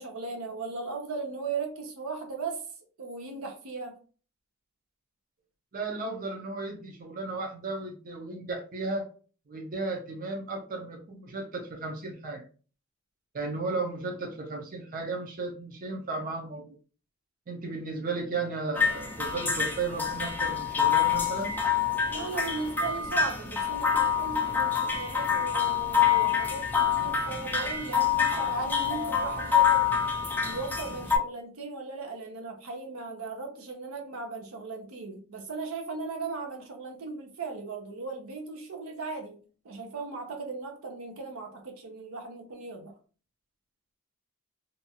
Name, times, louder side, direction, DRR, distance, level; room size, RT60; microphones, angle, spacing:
voice 1, 0.0-2.6 3.0-4.0 22.1-29.9 30.4-39.4 39.6-42.9, right 4 dB, 80° right, 0.7 m, -37 dB
voice 2, 5.7-9.1 9.5-12.4 13.3-16.7 17.5-21.5, right 3 dB, 40° right, 0.5 m, -34 dB
sound 1, 18.8-31.2, left 7 dB, 10° left, 0.4 m, -26 dB
2.7 x 2.3 x 2.8 m
head